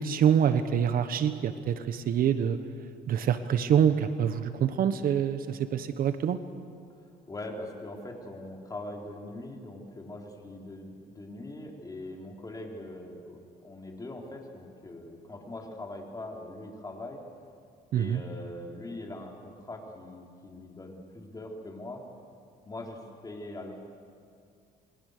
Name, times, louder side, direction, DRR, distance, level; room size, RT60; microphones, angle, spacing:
voice 1, 0.0-2.6 3.1-6.4 17.9-18.2, right 8 dB, 60° right, 10 dB, 1.3 m, -26 dB
voice 2, 7.0-17.2 17.9-22.0 22.7-23.7, left 1 dB, 20° left, 1 dB, 4.1 m, -42 dB
28.5 x 23.5 x 6.8 m, 2.3 s
cardioid pair, 110°, 17 cm